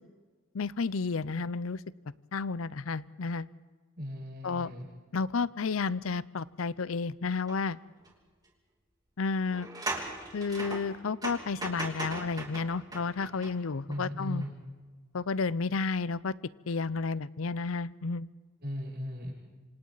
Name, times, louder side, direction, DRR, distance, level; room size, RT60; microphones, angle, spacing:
voice 1, 0.5-1.8 2.3-3.5 4.4-4.7 5.1-7.8 9.2-9.7 10.3-14.4 15.1-16.3 16.7-18.3, left 4 dB, 70° left, 19 dB, 0.6 m, -31 dB
voice 2, 4.0-4.8 13.9-14.5 18.6-19.3, left 1 dB, 50° right, -2 dB, 7.3 m, -37 dB
sound 1, 7.5-7.6 8.0-8.1 9.5-14.0 14.4-14.5, right 2 dB, 20° right, 3.1 m, -39 dB
27.5 x 26.0 x 4.0 m, 1.5 s
head